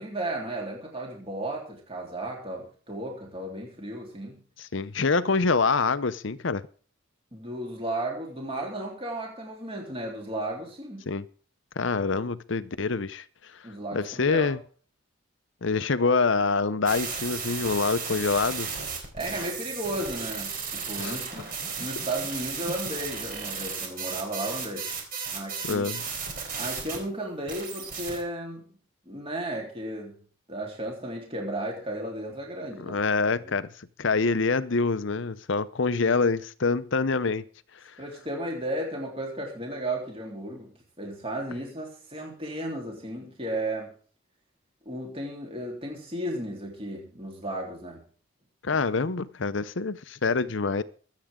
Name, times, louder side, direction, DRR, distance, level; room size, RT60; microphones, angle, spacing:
voice 1, 0.0-4.4 7.3-11.1 13.6-14.5 19.1-24.9 25.3-25.9 26.5-28.7 29.1-33.0 33.3-33.5 38.0-43.9 44.9-48.0, right 1 dB, 25° right, 3.7 m, -34 dB
voice 2, 4.6-6.6 11.1-11.3 11.8-13.2 13.9-14.6 15.6-18.7 21.0-21.2 25.6-26.0 32.8-33.7 34.0-37.4 48.6-50.8, left 4 dB, 65° left, 0.7 m, -26 dB
sound 1, 16.9-27.0 27.5-28.2, right 5 dB, 45° right, 4.0 m, -34 dB
23.5 x 8.5 x 3.8 m
head